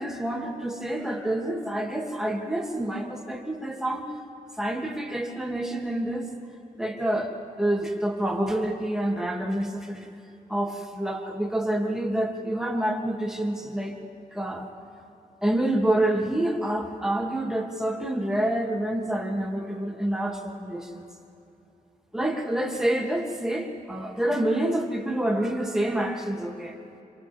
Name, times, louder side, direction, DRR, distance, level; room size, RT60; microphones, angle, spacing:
voice 1, 0.0-4.1 4.6-6.3 6.8-10.0 10.5-13.9 14.3-14.7 15.4-21.0 22.1-26.8, right 1 dB, 5° right, 0 dB, 2.7 m, -27 dB
27.0 x 26.5 x 3.7 m, 2.7 s
cardioid pair, 75°, 15 cm